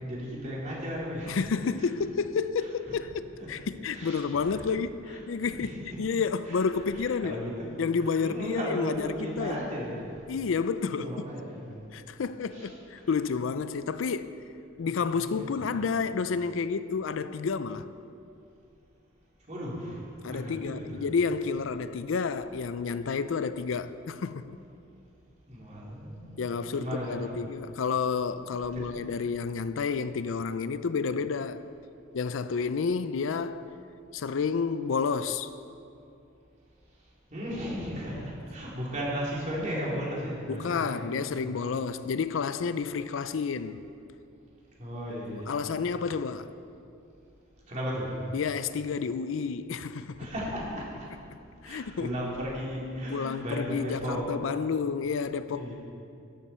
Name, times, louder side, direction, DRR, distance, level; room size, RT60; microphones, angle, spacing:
voice 1, 0.0-1.5 1.8-1.9 2.6-3.0 3.4-3.5 3.9-4.7 5.1-5.8 6.4-7.7 8.0-10.0 10.8-11.6 12.5-13.1 14.8-15.7 19.5-21.0 25.5-26.4 26.7-27.3 28.4-28.5 28.7-28.9 37.3-41.3 44.8-45.6 47.7-48.2 50.2-51.1 51.6-54.2 55.5-55.7, equal, 35° right, 3.2 m, -36 dB
voice 2, 1.3-7.4 7.8-9.6 10.3-11.1 11.9-14.4 14.8-17.9 20.2-24.6 26.4-31.6 32.1-33.7 34.1-35.5 40.5-43.8 45.3-46.5 48.3-50.2 51.6-52.1 53.1-55.7, left 5 dB, 70° left, 0.4 m, -30 dB
13.5 x 11.5 x 4.3 m
head